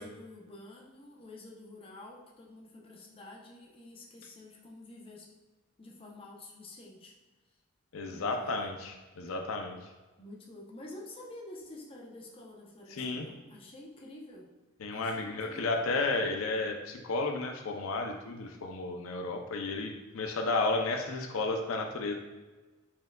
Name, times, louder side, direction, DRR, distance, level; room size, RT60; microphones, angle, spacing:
voice 1, 0.0-5.3 5.8-7.1 8.1-8.5 9.2-9.3 10.2-14.5 14.9-15.8, left 1 dB, 25° left, -2 dB, 0.6 m, -49 dB
voice 2, 7.9-9.9 12.9-13.3 14.8-22.1, left 3 dB, 80° left, 3 dB, 0.5 m, -32 dB
4.3 x 3.7 x 2.2 m, 1.2 s
head